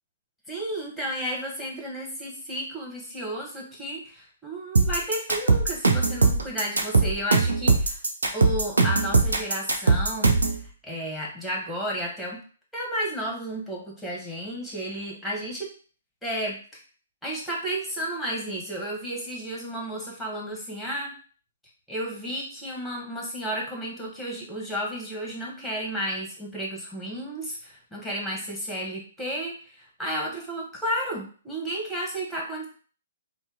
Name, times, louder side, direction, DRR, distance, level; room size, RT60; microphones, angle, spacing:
voice 1, 0.5-8.0 8.3-12.4 12.7-15.7 16.2-16.6 17.2-21.1 21.9-32.7, equal, ahead, -2 dB, 1.0 m, -32 dB
sound 1, 4.8-10.6, right 3 dB, 80° right, 0.6 m, -20 dB
2.7 x 2.0 x 3.7 m, 0.41 s
figure-of-eight pair, 125°, 0 cm